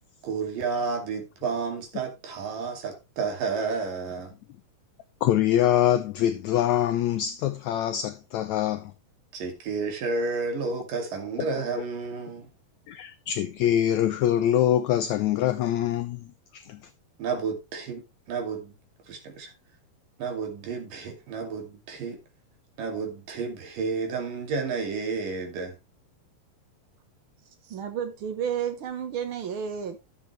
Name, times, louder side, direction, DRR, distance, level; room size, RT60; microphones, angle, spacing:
voice 1, 0.2-4.3 9.3-12.5 17.2-18.7 19.1-19.5 20.2-22.2 22.8-25.8, right 4 dB, 70° right, 4.0 m, -31 dB
voice 2, 5.2-8.9 12.9-16.2 16.5-16.8, left 11 dB, 85° left, 1.6 m, -24 dB
voice 3, 27.7-30.0, right 8 dB, 90° right, 1.1 m, -31 dB
12.0 x 7.9 x 3.2 m
omnidirectional pair, 4.1 m